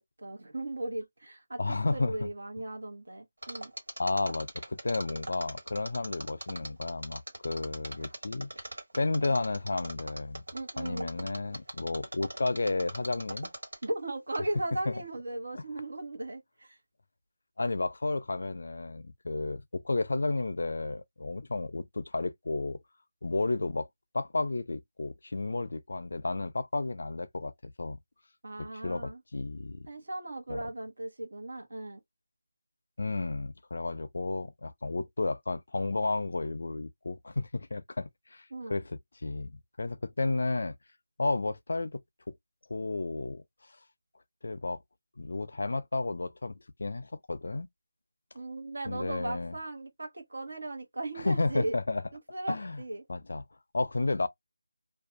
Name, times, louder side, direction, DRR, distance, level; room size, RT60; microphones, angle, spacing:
voice 1, 0.2-1.6 1.9-3.7 10.5-11.1 13.8-16.8 28.4-29.2 29.9-32.0 38.5-38.8 48.3-51.7 52.3-53.0, right 1 dB, 60° right, 1.1 m, -37 dB
voice 2, 1.6-2.3 4.0-8.5 8.9-10.4 10.8-13.5 14.9-15.0 15.5-15.6 17.6-22.8 23.2-23.9 24.1-28.0 28.6-29.9 30.5-30.7 33.0-39.5 39.8-40.8 41.2-42.0 42.3-42.4 42.7-43.4 44.4-44.8 45.2-47.7 48.9-49.6 51.2-52.0 52.5-52.8 53.1-53.4 53.7-54.3, left 3 dB, 55° left, 0.4 m, -32 dB
Mechanisms, 3.4-14.0 14.3-14.4, right 1 dB, 75° right, 1.5 m, -40 dB
2.5 x 2.2 x 2.5 m
figure-of-eight pair, 175°, 0 cm